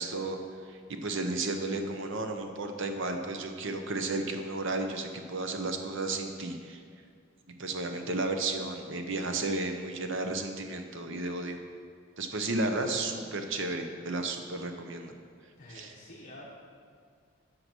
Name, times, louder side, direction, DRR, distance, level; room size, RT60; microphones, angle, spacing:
voice 1, 0.0-6.8 7.6-11.6 12.2-15.1 15.7-15.9, right 2 dB, 60° right, 6 dB, 0.7 m, -33 dB
voice 2, 15.6-16.4, left 1 dB, 35° left, -4 dB, 0.9 m, -48 dB
8.0 x 5.9 x 6.1 m, 2.2 s
head